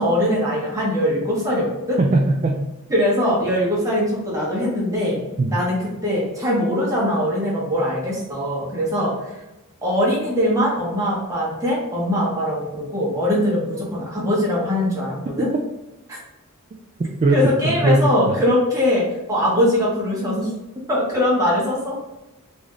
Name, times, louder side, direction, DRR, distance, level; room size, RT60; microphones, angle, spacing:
voice 1, 0.0-2.0 2.9-5.2 5.5-9.4 9.8-15.5 16.1-16.2 17.3-20.5 20.9-22.0, left 1 dB, 15° right, -6 dB, 1.2 m, -21 dB
voice 2, 2.0-2.6 5.4-5.6 17.2-18.3, right 2 dB, 30° right, 0 dB, 0.3 m, -19 dB
3.4 x 2.7 x 3.6 m, 0.99 s
head